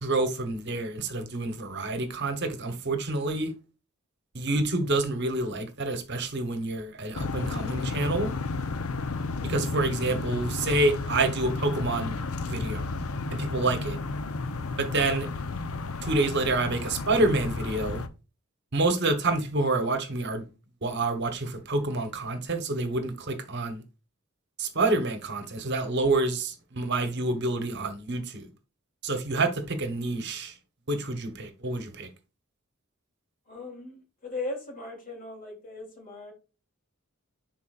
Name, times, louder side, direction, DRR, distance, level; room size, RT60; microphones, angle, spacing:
voice 1, 0.0-3.5 4.3-8.3 9.4-12.2 12.5-12.9 13.3-14.0 14.8-15.3 16.0-18.0 18.7-20.4 20.8-23.8 24.6-28.5 29.0-30.5 30.9-32.1, right 2 dB, 50° right, 1.0 m, -28 dB
sound 1, 7.1-18.1, left 3 dB, 80° left, 0.7 m, -32 dB
voice 2, 33.5-36.3, left 2 dB, 40° left, 2.9 m, -38 dB
10.5 x 4.1 x 2.4 m
head